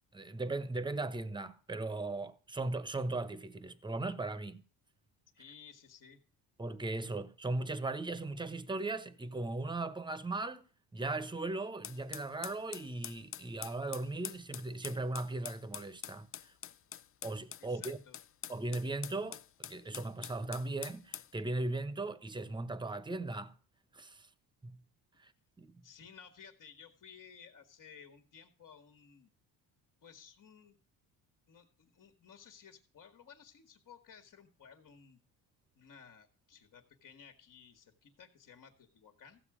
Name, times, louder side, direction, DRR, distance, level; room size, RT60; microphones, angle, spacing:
voice 1, 0.1-4.6 6.6-10.6 10.9-16.5 17.2-18.0 18.5-23.6 23.9-24.3 24.6-24.8 25.2-25.3 25.6-25.8, right 2 dB, 10° right, 1.0 m, -38 dB
voice 2, 5.3-6.2 17.6-18.2 25.8-29.3 30.0-30.8 31.5-35.2 35.8-39.4, left 7 dB, 50° left, 1.9 m, -56 dB
sound 1, 11.8-21.3, left 10 dB, 35° left, 0.4 m, -46 dB
15.0 x 8.0 x 5.0 m
cardioid pair, 115°, 40 cm